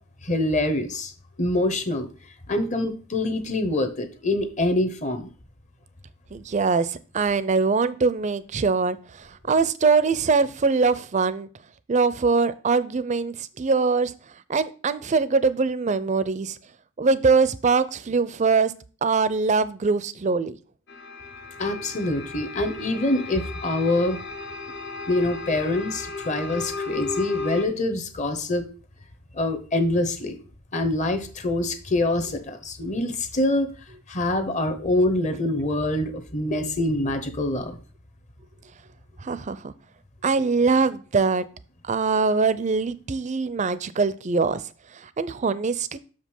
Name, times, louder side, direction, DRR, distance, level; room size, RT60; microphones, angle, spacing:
voice 1, 0.2-1.1 1.4-2.1 2.5-5.2 21.6-24.2 25.1-28.7 29.3-30.4 30.7-33.7 34.1-37.8, left 1 dB, 35° left, 8 dB, 0.9 m, -25 dB
voice 2, 6.3-11.5 11.9-14.1 14.5-16.6 17.0-18.7 19.0-20.6 39.2-39.7 40.2-41.4 41.8-44.6 44.9-46.0, right 4 dB, 35° right, 15 dB, 0.5 m, -22 dB
sound 1, 20.9-27.6, left 3 dB, 60° left, 0.9 m, -35 dB
6.3 x 5.2 x 5.4 m, 0.38 s
head